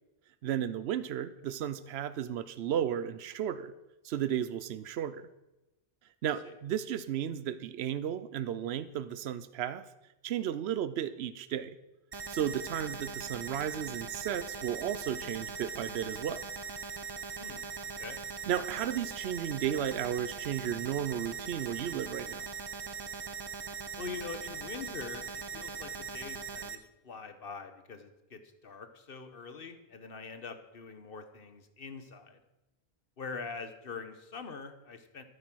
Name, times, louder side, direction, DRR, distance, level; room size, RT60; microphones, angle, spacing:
voice 1, 0.4-3.7 4.0-5.2 6.2-9.8 10.2-11.8 12.3-16.4 18.5-22.5, right 10 dB, 85° right, 14 dB, 0.9 m, -34 dB
sound 1, 12.1-26.8, right 5 dB, 30° right, 0.5 m, -40 dB
voice 2, 24.0-32.4 33.2-35.2, left 4 dB, 60° left, 9 dB, 1.3 m, -44 dB
13.5 x 8.8 x 6.2 m, 0.99 s
omnidirectional pair, 1.1 m